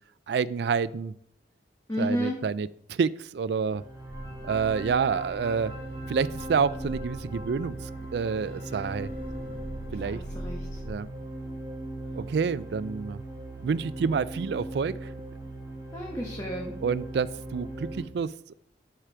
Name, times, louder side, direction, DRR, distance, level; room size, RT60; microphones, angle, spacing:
voice 1, 0.3-1.1 2.0-3.8 4.4-5.7 6.1-7.8 8.1-9.1 9.9-10.2 10.8-11.1 12.2-13.2 13.6-15.0 16.8-18.5, right 5 dB, 70° right, 18 dB, 0.3 m, -28 dB
voice 2, 1.9-2.4 10.0-10.8 15.9-16.7, equal, 20° left, -2 dB, 1.2 m, -32 dB
sound 1, 3.7-18.0, right 1 dB, 20° right, 3.1 m, -39 dB
sound 2, 4.1-10.9, equal, 75° left, 2.0 m, -43 dB
12.5 x 4.9 x 4.5 m, 0.73 s
head